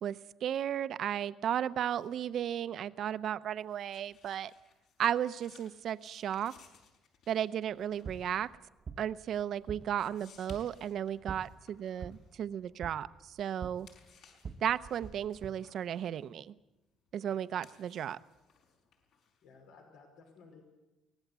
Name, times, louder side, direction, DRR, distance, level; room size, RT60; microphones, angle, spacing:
voice 1, 0.0-4.5 5.0-6.5 7.3-8.5 9.0-13.9 14.6-16.5 17.1-18.2, right 10 dB, 50° right, 14 dB, 0.7 m, -34 dB
sound 1, 1.4-13.2 13.6-19.7, left 6 dB, 70° left, 5.1 m, -64 dB
sound 2, 7.7-15.5, right 5 dB, 35° right, 1.0 m, -48 dB
voice 2, 19.4-20.6, left 4 dB, 85° left, 3 dB, 5.0 m, -57 dB
23.5 x 18.5 x 8.2 m, 0.98 s
cardioid pair, 150°, 0 cm